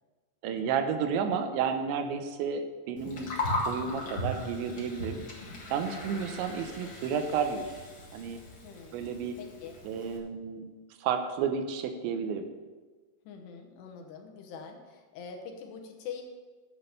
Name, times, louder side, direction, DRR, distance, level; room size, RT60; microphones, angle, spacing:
voice 1, 0.4-3.3 3.7-5.2 5.7-7.7 8.1-8.4 8.9-9.4 9.8-10.7 11.0-12.5, right 6 dB, 90° right, 7 dB, 3.2 m, -31 dB
Gurgling, 3.0-10.2, left 1 dB, 60° left, 1.0 m, -38 dB
voice 2, 5.9-6.9 8.6-9.7 13.3-16.2, left 6 dB, 75° left, 4 dB, 3.0 m, -45 dB
9.2 x 8.1 x 6.9 m, 1.4 s
omnidirectional pair, 5.1 m